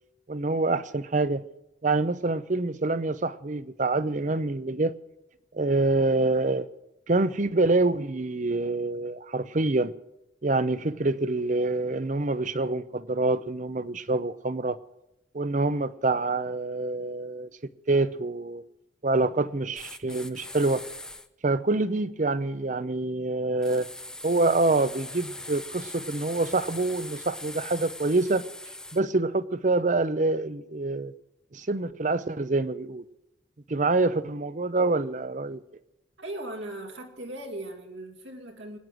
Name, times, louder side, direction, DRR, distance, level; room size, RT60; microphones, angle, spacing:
voice 1, 0.3-1.4 1.8-4.9 5.5-6.7 7.1-9.9 10.4-14.8 15.3-17.5 17.9-18.6 19.0-20.8 21.4-23.9 24.2-28.4 28.9-31.1 31.5-33.0 33.7-35.6, right 2 dB, 40° right, 0.7 m, -26 dB
sound 1, 19.7-21.3 23.6-29.0, left 1 dB, 5° left, 0.6 m, -41 dB
voice 2, 36.2-38.8, right 1 dB, 75° right, 2.3 m, -38 dB
24.0 x 9.6 x 6.2 m
head